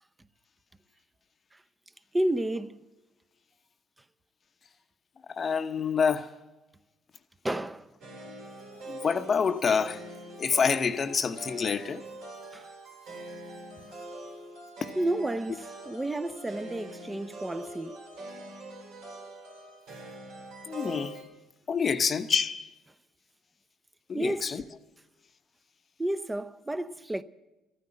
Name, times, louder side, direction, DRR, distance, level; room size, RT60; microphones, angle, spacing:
voice 1, 2.1-2.7 7.4-7.9 12.5-12.6 15.0-17.9 24.1-24.5 26.0-27.2, right 1 dB, 15° right, 0.7 m, -31 dB
voice 2, 5.3-6.3 8.9-10.1 10.4-12.0 20.7-21.2 21.7-22.7 24.1-24.6, left 6 dB, 40° left, 0.8 m, -27 dB
sound 1, 8.0-21.2, right 1 dB, 80° right, 4.8 m, -44 dB
14.5 x 9.3 x 8.8 m
supercardioid pair, 85°, 0 cm